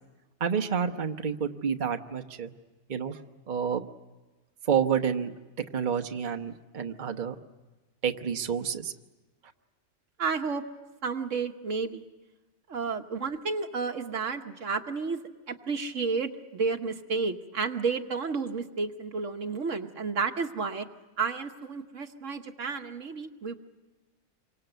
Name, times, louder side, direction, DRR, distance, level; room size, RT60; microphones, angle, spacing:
voice 1, 0.4-2.5 2.9-3.2 3.5-3.8 4.7-5.3 5.7-7.3 8.0-8.9, right 7 dB, 40° right, 6 dB, 1.1 m, -29 dB
voice 2, 10.2-10.6 11.0-12.1 12.7-15.2 15.5-20.9 21.2-23.6, right 4 dB, 70° right, 5 dB, 1.6 m, -31 dB
27.5 x 24.5 x 8.0 m, 1.2 s
omnidirectional pair, 1.4 m